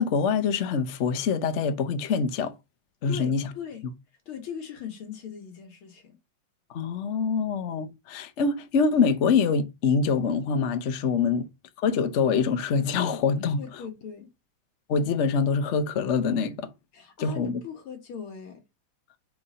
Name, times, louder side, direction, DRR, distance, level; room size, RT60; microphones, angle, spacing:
voice 1, 0.0-2.5 3.0-3.5 6.7-11.5 11.8-13.6 14.9-16.7 17.2-17.5, left 5 dB, 60° left, 0.7 m, -25 dB
voice 2, 3.1-3.8 4.3-6.2 13.6-14.3 16.9-18.6, left 7 dB, 85° left, 2.2 m, -39 dB
4.7 x 4.2 x 5.0 m
omnidirectional pair, 2.3 m